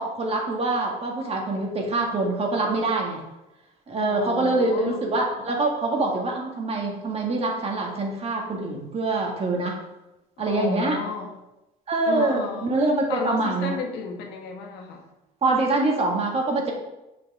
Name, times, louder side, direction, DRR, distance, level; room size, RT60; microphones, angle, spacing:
voice 1, 0.0-3.2 3.9-9.8 10.4-11.0 11.9-13.8 15.4-16.7, right 2 dB, 35° right, 0 dB, 1.9 m, -25 dB
voice 2, 4.0-5.0 10.4-11.3 12.1-12.7 13.1-15.1, left 5 dB, 90° left, 2 dB, 1.3 m, -33 dB
7.0 x 6.5 x 3.6 m, 0.96 s
cardioid pair, 110°, 17 cm